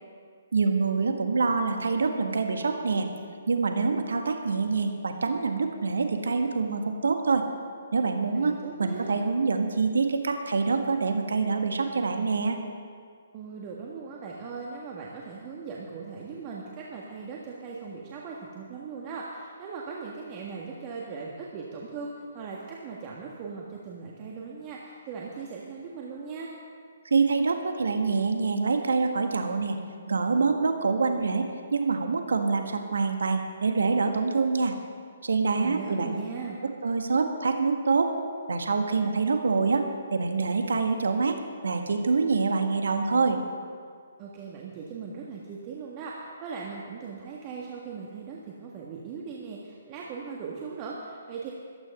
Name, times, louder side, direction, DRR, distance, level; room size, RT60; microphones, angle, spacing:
voice 1, 0.5-3.1 3.5-7.5 7.9-8.5 8.8-12.6 27.0-29.8 30.1-34.7 35.2-36.2 36.8-38.1 38.5-39.9 40.1-41.4 41.6-43.4, right 4 dB, 65° right, 5 dB, 1.6 m, -25 dB
voice 2, 8.3-9.2 13.3-26.5 35.6-36.6 44.2-51.5, right 5 dB, 30° right, -3 dB, 1.7 m, -39 dB
14.5 x 12.5 x 5.5 m, 2.1 s
figure-of-eight pair, 130°, 0 cm